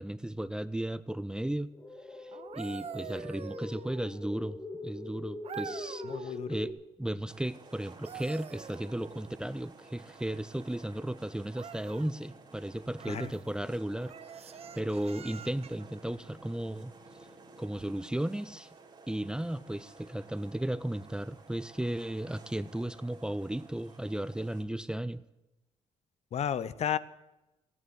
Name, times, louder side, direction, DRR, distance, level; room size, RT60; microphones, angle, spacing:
voice 1, 0.0-1.7 2.1-16.9 17.6-18.7 19.1-25.2, right 1 dB, 5° right, 16 dB, 0.5 m, -35 dB
sound 1, 1.7-6.7, left 2 dB, 30° left, 2.9 m, -42 dB
sound 2, 2.3-4.3 5.4-6.4 7.8-9.4 11.5-12.1 13.0-13.4 14.1-15.9 17.7-17.9, right 8 dB, 55° right, 0.7 m, -46 dB
voice 2, 6.0-6.6 13.1-13.3 26.3-27.0, left 9 dB, 60° left, 16 dB, 0.7 m, -32 dB
sound 3, 7.3-24.6, right 3 dB, 40° right, 2.3 m, -54 dB
14.0 x 9.6 x 7.8 m, 0.97 s
cardioid pair, 90°, 12 cm